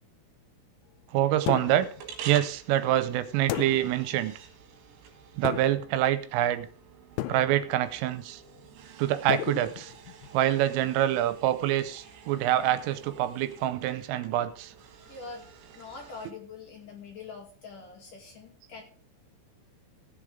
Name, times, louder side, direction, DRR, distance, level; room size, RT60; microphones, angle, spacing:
voice 1, 1.1-1.9 2.3-4.4 5.4-6.7 7.3-8.4 9.0-9.9 10.3-14.7, right 13 dB, 85° right, 12 dB, 3.3 m, -26 dB
sound 1, 1.4-16.3, right 8 dB, 70° right, 3.8 m, -49 dB
sound 2, 1.5-2.0 3.5-4.1 5.4-6.0 7.2-7.8 9.3-10.3, left 15 dB, 80° left, 2.7 m, -34 dB
voice 2, 15.1-15.4 15.7-18.8, left 4 dB, 50° left, 0 dB, 3.2 m, -44 dB
16.5 x 8.2 x 3.7 m, 0.43 s
omnidirectional pair, 5.8 m